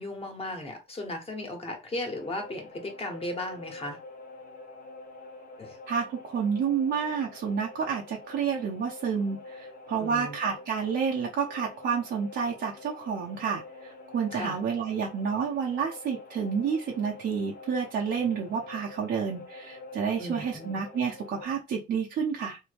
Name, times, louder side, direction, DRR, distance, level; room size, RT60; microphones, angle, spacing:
voice 1, 0.0-4.0 5.6-5.8 10.0-10.3 14.3-14.6 20.2-20.8, left 1 dB, 30° left, 1.2 m, -36 dB
sound 1, 2.1-21.4, left 2 dB, 45° left, 0.8 m, -46 dB
voice 2, 5.9-22.6, right 6 dB, 60° right, 0.7 m, -30 dB
3.1 x 2.2 x 3.3 m
supercardioid pair, 75°, 20 cm